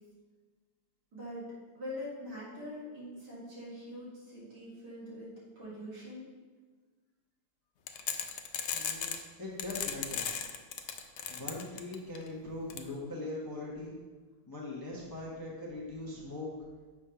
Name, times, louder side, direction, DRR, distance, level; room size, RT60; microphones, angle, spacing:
voice 1, 1.1-1.4 1.7-6.3, left 1 dB, 70° right, -9 dB, 3.1 m, -43 dB
sound 1, 7.9-9.2 9.6-12.2 12.7-12.8, left 8 dB, 80° left, 0.6 m, -35 dB
voice 2, 8.7-9.1 9.4-10.3 11.3-14.0 14.5-16.5, left 2 dB, 20° left, -4 dB, 0.7 m, -41 dB
7.1 x 3.6 x 5.6 m, 1.3 s
omnidirectional pair, 1.8 m